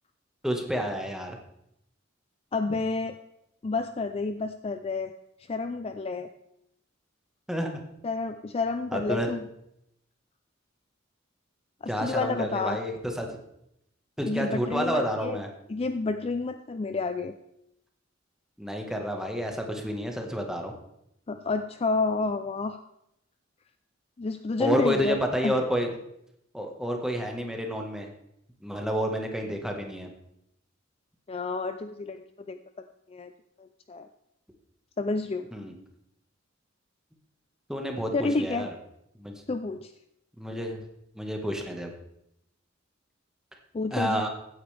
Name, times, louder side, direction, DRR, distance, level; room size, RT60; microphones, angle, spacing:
voice 1, 0.4-1.4 7.5-7.8 8.9-9.3 11.9-13.3 14.2-15.5 18.6-20.7 24.6-25.9 26.5-28.1 28.6-30.1 35.5-35.7 37.7-38.7 39.2-39.3 40.4-40.8 41.1-41.9 43.9-44.3, equal, 5° right, 2 dB, 1.5 m, -29 dB
voice 2, 2.5-3.2 3.6-5.1 5.5-6.3 8.0-9.5 11.8-12.8 14.2-15.4 15.7-17.3 21.3-22.8 24.2-25.2 25.4-25.5 31.3-33.3 33.6-34.1 35.0-35.5 38.1-38.7 39.5-39.9 43.7-44.2, left 3 dB, 30° left, 9 dB, 0.4 m, -30 dB
16.0 x 9.2 x 3.4 m, 0.80 s
head